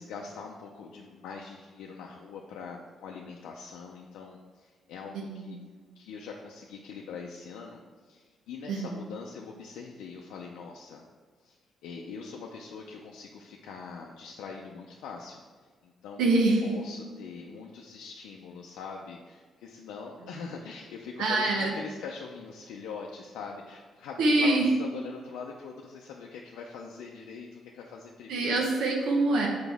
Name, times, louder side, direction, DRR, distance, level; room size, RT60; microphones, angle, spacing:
voice 1, 0.0-5.6 6.0-11.0 11.4-11.6 11.8-15.4 15.8-28.6, left 5 dB, 90° left, -1 dB, 0.5 m, -42 dB
voice 2, 5.1-5.6 8.7-9.0 16.2-16.6 21.2-21.7 24.2-24.7 28.3-29.5, right 2 dB, 85° right, -1 dB, 0.9 m, -25 dB
6.2 x 4.8 x 3.5 m, 1.5 s
cardioid pair, 90°, 0 cm